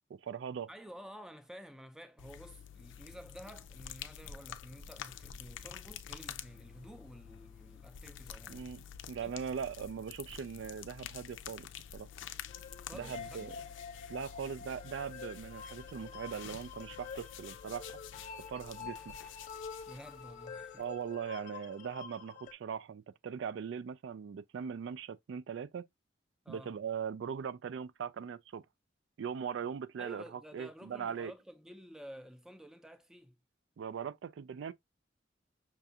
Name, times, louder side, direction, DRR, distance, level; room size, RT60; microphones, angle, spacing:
voice 1, 0.1-0.7 8.5-12.1 12.9-13.5 14.1-17.9 18.4-19.2 20.8-25.9 26.5-28.6 29.2-31.3 33.8-34.7, right 7 dB, 75° right, 0.3 m, -40 dB
voice 2, 0.7-8.7 9.2-9.4 12.8-13.6 19.9-20.9 26.4-26.7 30.0-33.4, equal, 5° right, 0.4 m, -51 dB
sound 1, 2.2-21.1, left 9 dB, 85° left, 0.4 m, -49 dB
sound 2, 12.5-22.5, left 6 dB, 40° left, 0.7 m, -47 dB
5.8 x 2.3 x 2.6 m
head